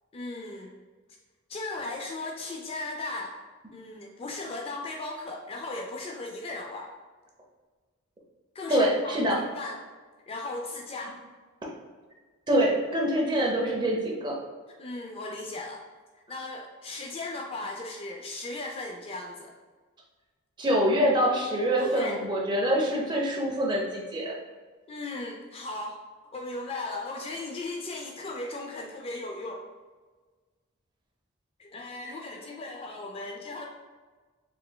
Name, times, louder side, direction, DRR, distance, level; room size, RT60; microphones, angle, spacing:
voice 1, 0.1-0.8 1.5-3.4 3.7-6.9 8.5-9.3 9.5-9.8 10.3-11.2 14.8-15.8 16.3-19.5 21.8-22.2 24.9-26.0 26.3-29.7 31.6-33.7, left 2 dB, 30° left, 0 dB, 0.3 m, -37 dB
voice 2, 8.7-9.4 12.5-14.3 20.6-24.3, equal, 20° right, -2 dB, 0.7 m, -25 dB
4.3 x 3.2 x 2.2 m, 1.4 s
head